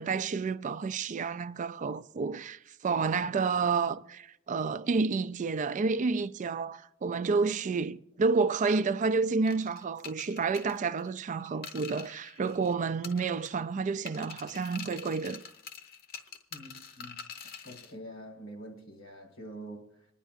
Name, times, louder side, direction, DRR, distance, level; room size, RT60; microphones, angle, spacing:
voice 1, 0.0-15.4, right 4 dB, 40° right, 0.3 m, -30 dB
sound 1, 9.5-12.7 13.0-13.7 14.1-17.9, left 6 dB, 50° left, 0.8 m, -46 dB
voice 2, 16.5-17.2 17.6-20.1, right 1 dB, 85° left, 1.9 m, -46 dB
27.0 x 10.0 x 2.5 m
head